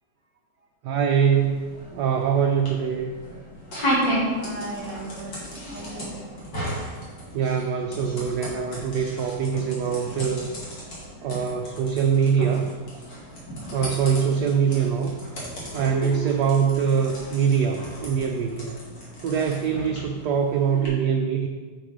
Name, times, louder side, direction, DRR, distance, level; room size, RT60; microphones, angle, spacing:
voice 1, 0.8-3.1 7.3-10.5 11.2-12.7 13.7-15.2 15.7-18.8 19.2-21.5, right 7 dB, 70° right, 3 dB, 1.0 m, -23 dB
sound 1, 1.3-20.9, equal, 65° left, 2.7 m, -34 dB
voice 2, 3.9-7.1 10.8-11.8 13.0-13.5 14.4-14.8 19.9-20.3, right 2 dB, 20° right, -1 dB, 1.4 m, -42 dB
8.0 x 5.5 x 5.0 m, 1.5 s
omnidirectional pair, 2.2 m